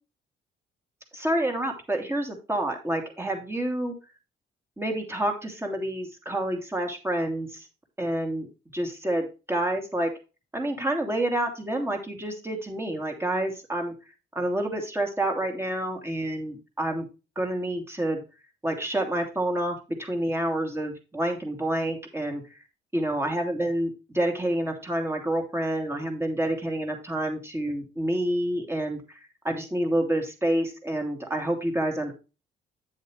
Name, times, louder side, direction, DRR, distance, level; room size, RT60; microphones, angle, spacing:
voice 1, 1.1-3.9 4.8-7.6 8.0-8.5 8.7-10.1 10.5-13.9 14.3-17.1 17.4-18.2 18.6-22.4 22.9-29.0 29.4-32.1, right 1 dB, 10° right, 3 dB, 2.5 m, -28 dB
9.0 x 7.6 x 3.2 m, 0.30 s
cardioid pair, 90°, 20 cm